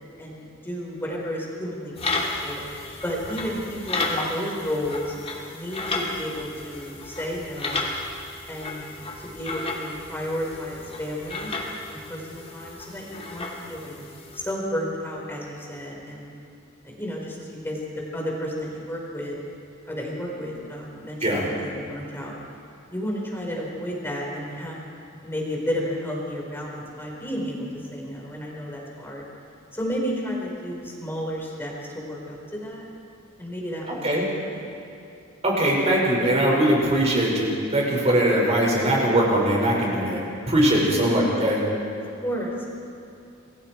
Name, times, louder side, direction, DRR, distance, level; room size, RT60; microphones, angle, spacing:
voice 1, 0.2-2.6 3.0-5.1 5.5-7.9 8.5-11.5 11.9-14.0 14.3-16.3 16.8-17.8 18.1-19.4 19.9-22.4 22.9-24.8 25.2-29.2 29.7-32.8 33.4-34.1 34.5-34.7 40.8-41.3 42.2-42.8, equal, 10° left, -2 dB, 4.6 m, -32 dB
sound 1, 2.0-14.5, left 2 dB, 30° left, 2.5 m, -33 dB
voice 2, 35.4-40.2 40.5-41.6, right 1 dB, 30° right, -3 dB, 5.6 m, -21 dB
28.5 x 22.5 x 4.6 m, 2.8 s
head